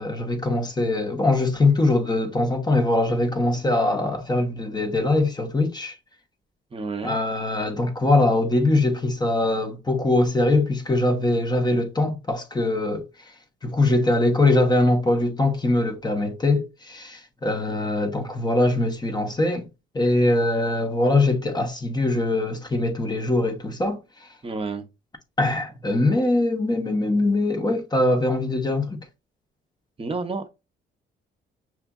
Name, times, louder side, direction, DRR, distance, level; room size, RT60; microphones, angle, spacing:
voice 1, 0.0-5.9 7.0-13.0 13.6-19.7 19.9-24.0 25.4-29.0, left 2 dB, 20° left, 0.8 m, -22 dB
voice 2, 6.7-7.2 24.4-24.9 30.0-30.5, right 3 dB, 30° right, 0.9 m, -30 dB
5.8 x 2.5 x 2.3 m
cardioid pair, 90°, 20 cm